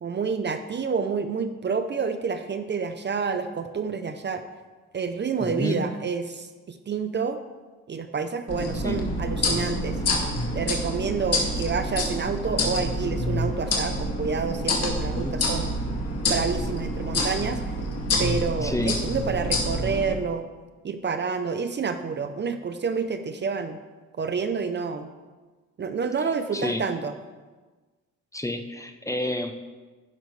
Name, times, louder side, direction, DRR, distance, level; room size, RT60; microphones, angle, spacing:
voice 1, 0.0-4.4 4.9-7.4 7.9-10.0 10.5-15.8 16.3-17.6 18.2-20.5 20.8-23.8 24.2-25.1 25.8-27.1, right 5 dB, 35° right, 8 dB, 0.7 m, -28 dB
voice 2, 5.4-5.9 8.8-9.1 15.2-15.3 18.6-19.0 26.5-26.8 28.3-29.5, left 1 dB, 10° left, 7 dB, 0.8 m, -29 dB
sound 1, 8.5-20.1, left 1 dB, 55° left, 2.2 m, -27 dB
11.0 x 10.5 x 3.3 m, 1.3 s
cardioid pair, 90°, 30 cm